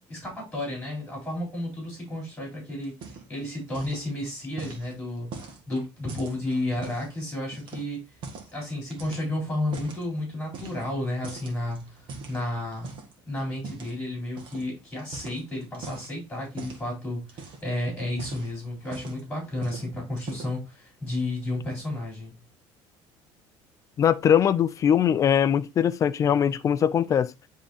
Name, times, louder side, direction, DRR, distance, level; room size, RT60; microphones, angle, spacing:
voice 1, 0.0-2.9 3.3-8.0 8.5-12.9 13.3-22.3, left 1 dB, 10° left, 4.0 m, -32 dB
sound 1, 2.8-3.4 3.7-4.1 4.6-7.1 7.5-8.6 8.9-10.0 10.5-11.0 11.2-13.1 13.6-14.0 14.4-14.6 15.0-16.1 16.6-16.9 17.2-17.7 18.1-19.3 19.6-19.9 20.2-20.6, right 4 dB, 50° right, 1.7 m, -41 dB
voice 2, 24.0-27.3, left 9 dB, 30° left, 0.4 m, -21 dB
10.0 x 3.7 x 2.6 m
cardioid pair, 145°, 10 cm